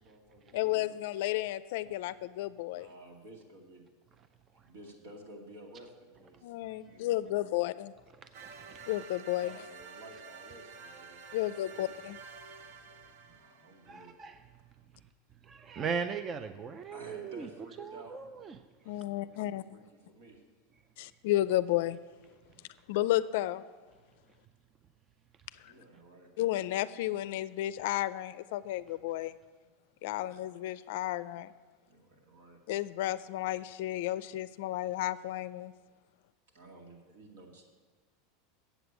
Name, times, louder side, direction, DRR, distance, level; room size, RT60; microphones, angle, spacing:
voice 1, 0.0-1.0 2.5-3.9 4.5-6.5 6.8-7.7 9.4-11.9 13.2-14.2 16.9-18.1 18.8-20.4 25.6-26.3 30.0-30.4 31.9-32.6 36.5-37.6, right 1 dB, 75° right, 1 dB, 2.3 m, -53 dB
voice 2, 0.5-2.9 6.4-7.9 8.9-9.5 11.3-12.2 18.9-19.6 21.0-22.0 22.9-23.6 26.4-29.3 30.0-31.5 32.7-35.7, left 15 dB, 65° left, 16 dB, 0.4 m, -32 dB
voice 3, 8.2-8.9 13.9-14.4 15.4-17.5 17.8-18.6, right 6 dB, 25° right, 10 dB, 0.4 m, -38 dB
sound 1, 8.3-14.2, right 5 dB, 60° right, 0.8 m, -50 dB
8.0 x 7.9 x 8.1 m, 1.4 s
supercardioid pair, 160°, 0 cm